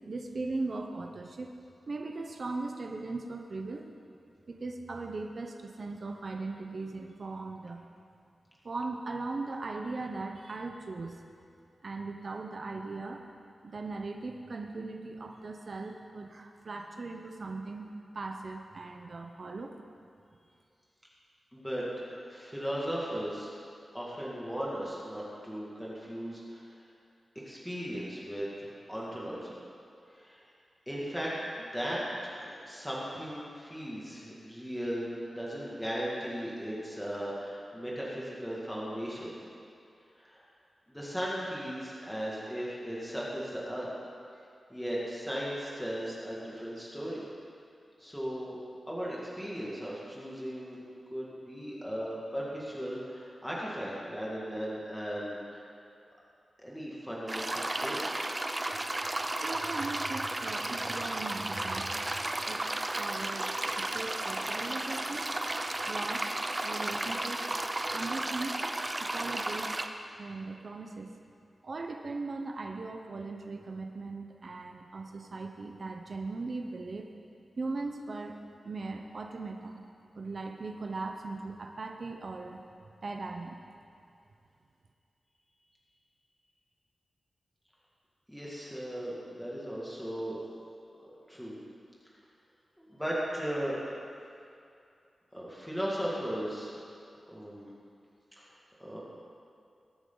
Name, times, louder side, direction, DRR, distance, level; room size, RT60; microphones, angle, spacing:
voice 1, 0.1-1.5 1.9-3.9 4.5-7.8 8.6-11.2 11.8-13.2 13.6-17.9 18.1-19.7 59.4-61.9 62.5-62.6 63.0-65.3 65.9-66.3 66.6-67.4 67.9-68.6 69.0-69.7 70.2-71.1 71.6-77.1 77.6-78.4 78.6-79.8 80.1-82.6 83.0-83.6, right 3 dB, 45° right, 2 dB, 0.9 m, -38 dB
voice 2, 21.5-21.8 22.1-23.5 23.9-26.8 27.5-29.6 30.1-30.5 30.9-39.3 40.2-40.4 40.9-43.9 44.7-47.3 48.0-48.6 48.9-50.8 51.1-55.6 56.6-58.0 88.3-90.4 91.0-91.6 92.8-93.8 95.3-96.9 97.3-97.7 98.4-98.5 98.8-99.0, equal, ahead, -6 dB, 2.3 m, -37 dB
sound 1, 57.3-69.9, right 1 dB, 20° right, 0.6 m, -33 dB
21.5 x 8.9 x 4.0 m, 2.5 s
wide cardioid pair, 135°, 0 cm